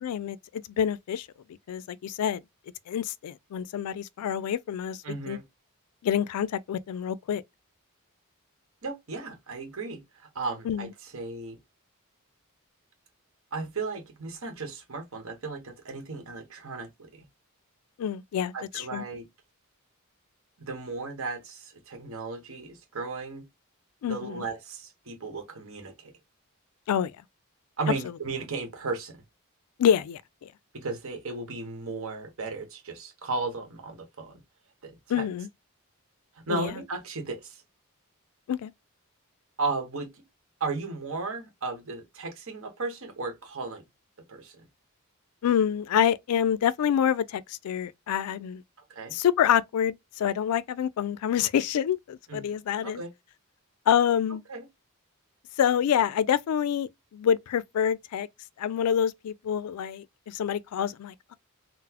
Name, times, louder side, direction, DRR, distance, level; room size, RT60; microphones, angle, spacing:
voice 1, 0.0-1.3 1.7-2.4 2.9-5.0 5.3-5.4 6.0-7.4 10.7-10.9 18.0-19.0 24.0-24.4 26.9-27.1 29.8-30.5 35.1-35.5 36.5-36.7 38.5-38.7 45.4-48.6 49.1-53.0 53.9-54.4 55.6-58.3 58.6-61.4, left 9 dB, 80° left, 0.3 m, -27 dB
voice 2, 5.0-5.4 8.8-11.6 13.5-17.3 18.5-19.3 20.6-23.5 24.0-26.1 27.8-29.2 30.7-34.4 34.8-35.3 36.3-37.6 39.6-40.2 40.6-43.8 44.3-44.6 48.9-49.1 52.3-52.6 52.8-53.1 54.5-54.7, right 3 dB, 65° right, 0.9 m, -35 dB
3.8 x 2.0 x 2.8 m
head